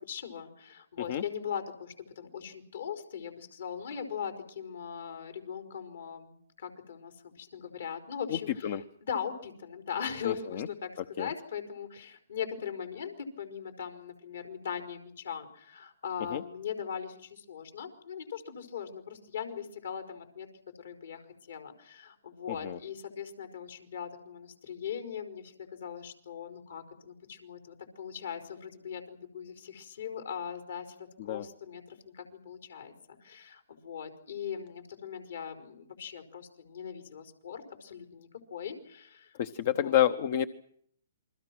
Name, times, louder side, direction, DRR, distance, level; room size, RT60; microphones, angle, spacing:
voice 1, 0.1-20.5 20.8-21.2 21.5-30.9 31.2-39.4 39.6-40.0, left 7 dB, 75° left, 5 dB, 4.8 m, -40 dB
voice 2, 8.3-8.8 10.2-10.7 11.2-11.3 16.3-16.4 22.6-22.8 31.3-31.4 39.4-40.5, left 10 dB, 50° left, 11 dB, 1.0 m, -28 dB
28.0 x 22.5 x 6.1 m, 0.66 s
hypercardioid pair, 135°, 0 cm